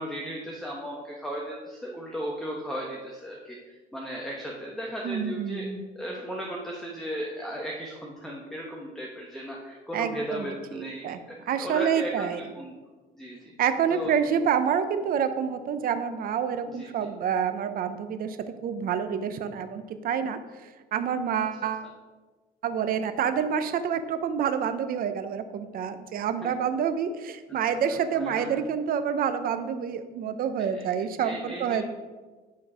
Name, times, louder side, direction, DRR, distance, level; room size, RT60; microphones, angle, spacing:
voice 1, 0.0-5.7 5.9-12.7 13.1-13.4 13.9-14.1 16.7-17.1 26.4-26.5 27.7-27.8 28.1-28.6 30.7-30.8 31.2-31.9, equal, ahead, -2 dB, 1.2 m, -36 dB
voice 2, 5.0-5.8 9.9-10.5 11.0-11.2 11.5-12.4 13.6-18.4 18.6-20.4 20.9-21.9 22.6-31.9, right 7 dB, 60° right, 10 dB, 0.8 m, -28 dB
10.5 x 4.6 x 4.9 m, 1.3 s
cardioid pair, 110°, 17 cm